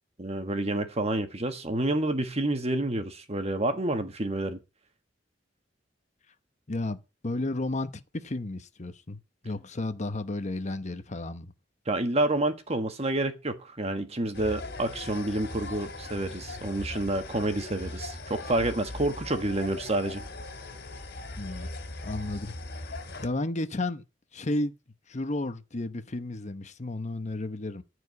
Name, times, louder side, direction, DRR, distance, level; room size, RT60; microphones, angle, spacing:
voice 1, 0.2-4.6 11.9-20.2, right 2 dB, 35° right, 1.6 m, -29 dB
voice 2, 6.7-9.2 9.4-11.5 21.4-21.7 22.0-24.0 24.3-24.7 25.1-27.8, left 2 dB, 40° left, 0.9 m, -33 dB
sound 1, 14.3-23.3, left 2 dB, 60° left, 2.9 m, -39 dB
14.5 x 4.9 x 8.3 m
head